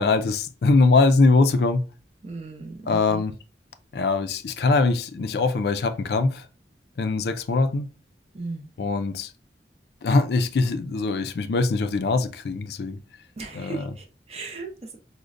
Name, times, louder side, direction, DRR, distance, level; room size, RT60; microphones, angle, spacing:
voice 1, 0.0-1.8 2.9-3.3 3.9-6.5 7.0-7.9 8.8-9.3 10.0-13.0 13.6-13.8, left 3 dB, 65° left, 0.4 m, -22 dB
voice 2, 2.2-3.3 8.3-8.7 13.4-15.0, right 3 dB, 35° right, 0.6 m, -37 dB
5.0 x 2.1 x 2.5 m
head